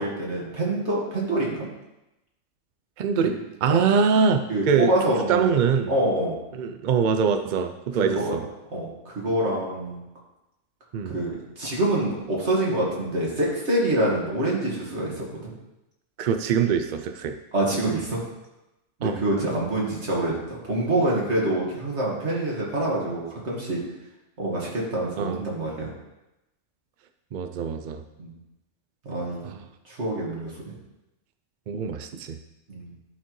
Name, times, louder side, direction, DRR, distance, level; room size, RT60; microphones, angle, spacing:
voice 1, 0.0-1.7 3.2-3.3 3.7-3.8 4.5-6.4 8.0-8.3 8.7-10.0 11.1-15.5 17.5-18.2 19.0-23.8 24.4-25.9 28.2-28.3 29.0-29.5 29.9-30.7 32.7-32.9, right 1 dB, 60° right, -4 dB, 2.1 m, -26 dB
voice 2, 3.0-3.3 3.6-5.9 6.5-8.5 10.9-11.1 16.2-17.4 19.0-19.2 25.2-25.4 27.3-28.0 29.4-29.6 31.7-32.4, right 6 dB, 75° right, 7 dB, 0.4 m, -23 dB
12.5 x 4.4 x 3.1 m, 0.95 s
omnidirectional pair, 1.4 m